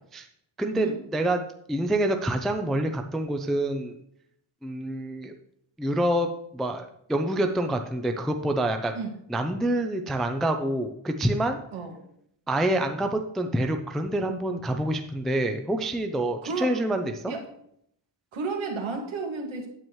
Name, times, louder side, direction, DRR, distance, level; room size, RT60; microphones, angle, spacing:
voice 1, 0.6-1.4 1.7-4.0 4.6-5.3 5.8-8.9 9.3-11.6 12.5-17.3, right 1 dB, ahead, 5 dB, 0.3 m, -27 dB
voice 2, 16.4-16.7 17.3-17.4 18.3-19.7, right 4 dB, 75° right, 2 dB, 2.0 m, -32 dB
9.1 x 8.7 x 3.1 m, 0.70 s
wide cardioid pair, 170°, 49 cm